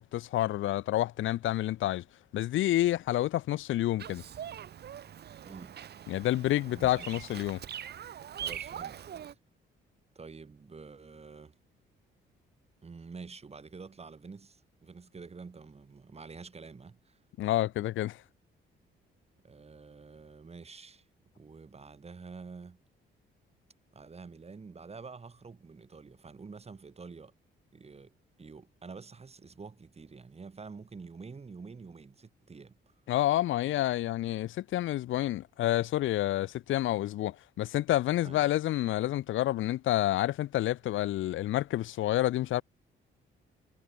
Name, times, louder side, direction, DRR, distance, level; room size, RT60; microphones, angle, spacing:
voice 1, 0.0-2.0 2.3-4.2 6.1-7.6 17.4-18.2 33.1-42.6, left 14 dB, 80° left, 1.1 m, -29 dB
Bird vocalization bird call bird song, 4.0-9.3, right 9 dB, 55° right, 1.3 m, -42 dB
voice 2, 5.4-5.8 6.7-7.2 8.4-9.0 9.3-9.4 10.1-11.5 12.8-17.2 19.4-21.0 21.4-22.8 23.9-27.3 27.7-32.9 38.2-38.5, right 4 dB, 30° right, 4.7 m, -48 dB
cardioid pair, 90°, 20 cm